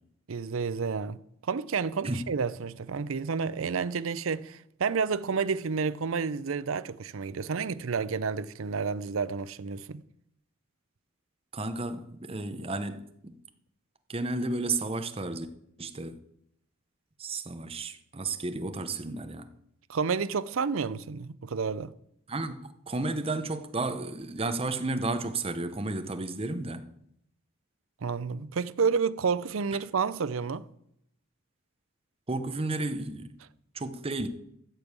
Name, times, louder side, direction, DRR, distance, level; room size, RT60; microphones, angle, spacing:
voice 1, 0.3-1.2 1.4-10.0 19.9-21.9 28.0-30.7, right 5 dB, 75° right, 0.5 m, -30 dB
voice 2, 11.5-13.3 14.1-15.5 15.8-16.2 17.2-19.5 22.3-26.9 32.3-33.3 33.7-34.3, right 2 dB, 25° right, 0.8 m, -32 dB
13.5 x 5.3 x 8.1 m
head